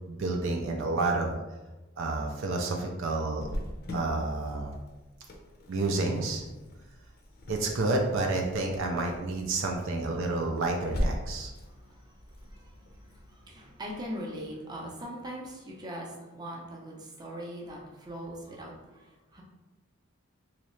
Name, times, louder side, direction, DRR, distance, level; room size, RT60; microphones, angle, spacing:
voice 1, 0.1-1.4 2.0-3.5 3.9-4.8 5.7-6.4 7.5-11.5, right 2 dB, 65° right, 2 dB, 0.4 m, -29 dB
Cricket, 3.4-14.8, equal, 50° left, 0.6 m, -41 dB
voice 2, 11.4-19.4, equal, 20° right, -2 dB, 0.6 m, -41 dB
3.1 x 2.8 x 3.1 m, 1.1 s
head